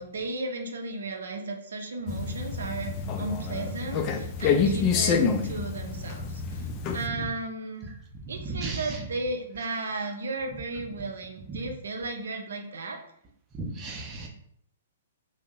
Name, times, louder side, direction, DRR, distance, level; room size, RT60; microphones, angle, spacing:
voice 1, 0.0-6.6 6.9-7.9 8.3-13.0, right 2 dB, 75° right, 4 dB, 0.5 m, -34 dB
sound 1, 2.1-7.1, left 6 dB, 35° left, 0.4 m, -28 dB
voice 2, 8.5-9.0 13.7-14.3, right 3 dB, 25° right, 0 dB, 0.5 m, -35 dB
2.7 x 2.0 x 3.7 m, 0.70 s
hypercardioid pair, 120°, 0 cm